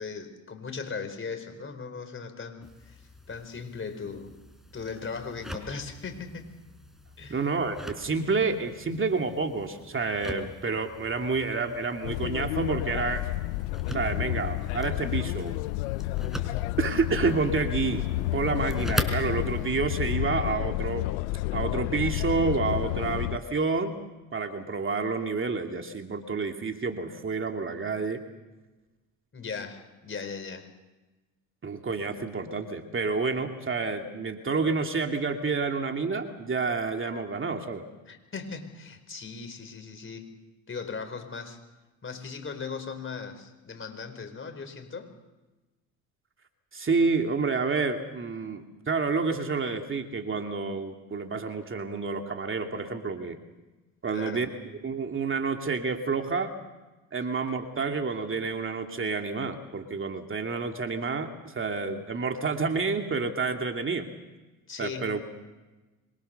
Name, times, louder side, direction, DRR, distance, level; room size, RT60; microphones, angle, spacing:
voice 1, 0.0-3.0 3.3-4.4 4.7-6.5 7.2-7.4 29.3-30.7 38.1-40.4 40.7-41.6 42.0-45.1 54.1-54.4 64.7-65.2, left 5 dB, 30° left, 7 dB, 4.5 m, -38 dB
sound 1, 2.6-19.7, equal, ahead, 4.7 m, -41 dB
voice 2, 7.3-13.2 13.9-15.5 16.8-18.0 18.3-21.0 21.5-23.9 24.3-28.2 31.6-37.8 46.7-53.4 54.0-54.5 54.8-56.5 57.1-64.1 64.8-65.2, right 4 dB, 30° right, 4 dB, 2.7 m, -29 dB
sound 2, 12.0-23.4, left 17 dB, 85° left, 0.8 m, -30 dB
26.5 x 23.0 x 6.9 m, 1.1 s
hypercardioid pair, 75°, 41 cm